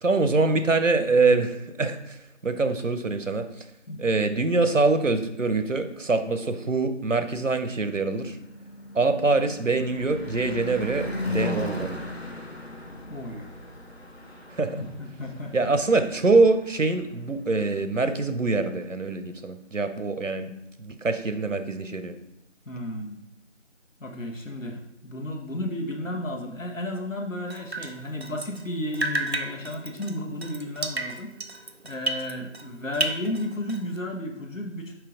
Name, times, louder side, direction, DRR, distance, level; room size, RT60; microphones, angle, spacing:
voice 1, 0.0-2.2 2.4-3.5 4.0-8.4 8.9-11.9 14.5-14.8 15.5-20.5 20.8-22.2, right 3 dB, 80° right, 9 dB, 0.8 m, -24 dB
Car passing by / Truck / Engine, 7.6-17.6, left 2 dB, 55° left, 0.9 m, -37 dB
voice 2, 13.1-13.5 14.8-15.7 22.6-23.2 24.0-31.3 31.8-34.9, left 1 dB, 85° left, 2 dB, 1.3 m, -33 dB
Drip, 27.5-28.7 28.9-32.7 32.9-34.0, right 2 dB, 55° right, 0.5 m, -32 dB
5.7 x 4.8 x 3.8 m, 0.84 s
figure-of-eight pair, 180°, 38 cm